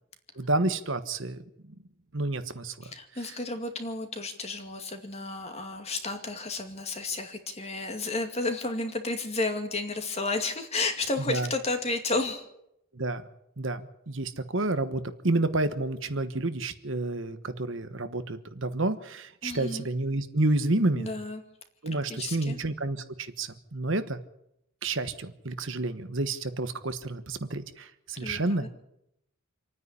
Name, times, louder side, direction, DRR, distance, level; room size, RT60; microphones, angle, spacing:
voice 1, 0.4-1.4 2.1-2.9 11.3-11.5 12.9-13.2 13.6-21.1 21.8-24.2 24.8-28.7, right 2 dB, 60° right, 10 dB, 1.2 m, -29 dB
voice 2, 2.8-12.5 19.4-19.9 20.9-21.4 22.1-22.6 28.2-28.7, left 3 dB, 30° left, 6 dB, 2.2 m, -32 dB
27.0 x 9.8 x 9.9 m, 0.79 s
head